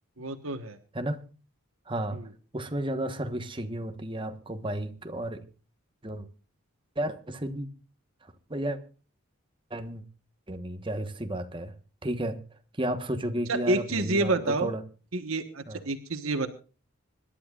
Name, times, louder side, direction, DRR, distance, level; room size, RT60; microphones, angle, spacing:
voice 1, 0.2-0.8 2.1-2.3 13.5-14.7 15.1-16.5, right 2 dB, 80° right, 1.3 m, -29 dB
voice 2, 1.9-2.2 2.5-5.4 6.0-6.3 7.0-7.7 8.5-8.8 9.7-10.0 10.5-11.7 12.0-12.4 12.8-14.8 15.7-15.8, right 1 dB, 25° right, 1.2 m, -32 dB
26.0 x 11.5 x 2.4 m
head